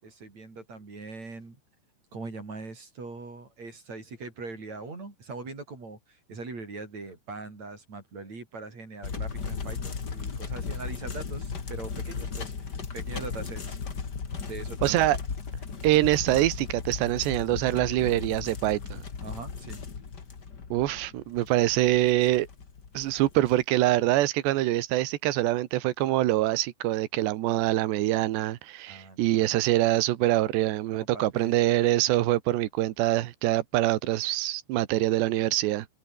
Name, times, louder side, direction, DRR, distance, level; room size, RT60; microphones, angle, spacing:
voice 1, 0.0-1.6 2.1-12.7 12.9-13.8 14.5-15.1 19.2-19.8 28.9-29.5 30.9-31.6, right 3 dB, 35° right, 7.2 m, -41 dB
sound 1, 9.0-23.6, left 5 dB, 35° left, 1.6 m, -36 dB
voice 2, 14.8-15.2 15.8-19.0 20.7-22.5 22.9-35.9, right 15 dB, 75° right, 3.3 m, -25 dB
omnidirectional pair, 5.4 m